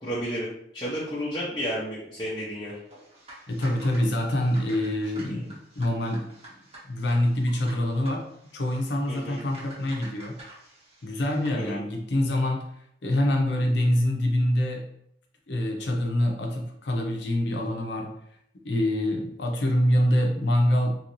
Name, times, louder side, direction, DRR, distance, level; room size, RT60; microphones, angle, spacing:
voice 1, 0.0-2.8 5.3-5.5 9.1-9.4 11.5-11.8, equal, 25° left, -9 dB, 0.6 m, -32 dB
sound 1, 2.9-11.6, right 1 dB, 30° right, 1.0 m, -48 dB
voice 2, 3.5-6.3 6.9-8.2 8.5-10.4 11.0-12.6 13.0-14.8 15.5-18.1 18.6-20.9, left 1 dB, 65° left, 2 dB, 0.6 m, -25 dB
3.0 x 2.6 x 3.0 m, 0.74 s
head